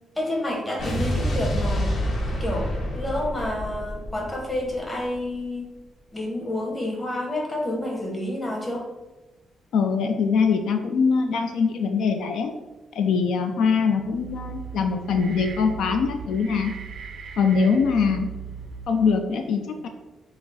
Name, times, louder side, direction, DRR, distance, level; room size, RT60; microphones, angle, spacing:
voice 1, 0.2-1.9 2.4-5.7 6.1-8.8, left 1 dB, 10° left, -1 dB, 0.9 m, -29 dB
Explosion, 0.8-5.1, equal, 45° left, 1.1 m, -28 dB
voice 2, 9.7-12.5 13.0-16.8 17.4-18.3 18.9-19.9, left 5 dB, 75° left, 5 dB, 0.4 m, -22 dB
sound 1, 13.9-19.2, right 7 dB, 50° right, 0.4 m, -38 dB
5.6 x 2.0 x 4.0 m, 1.1 s
cardioid pair, 155°, 0 cm